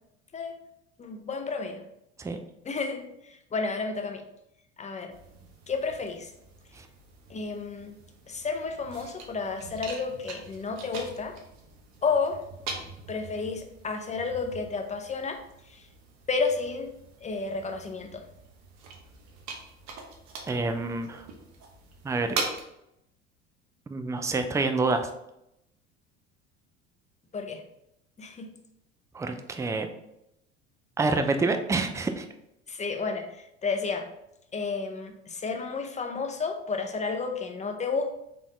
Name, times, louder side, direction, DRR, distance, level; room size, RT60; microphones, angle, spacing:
voice 1, 1.0-1.8 2.6-4.2 4.8-5.1 5.7-6.3 7.3-8.0 8.3-11.4 12.0-12.4 13.1-15.4 15.7-15.8 16.3-16.9 17.2-18.2 27.3-27.6 28.2-28.5 32.7-33.4 33.6-34.1 34.5-38.1, left 4 dB, 20° left, 5 dB, 0.7 m, -31 dB
sound 1, 5.1-22.6, right 4 dB, 55° right, 1.0 m, -42 dB
voice 2, 20.5-21.3 22.0-22.4 23.9-25.1 29.1-29.9 31.0-32.3, right 3 dB, 10° right, 7 dB, 0.4 m, -27 dB
4.2 x 3.5 x 3.1 m, 0.82 s
hypercardioid pair, 75°, 33 cm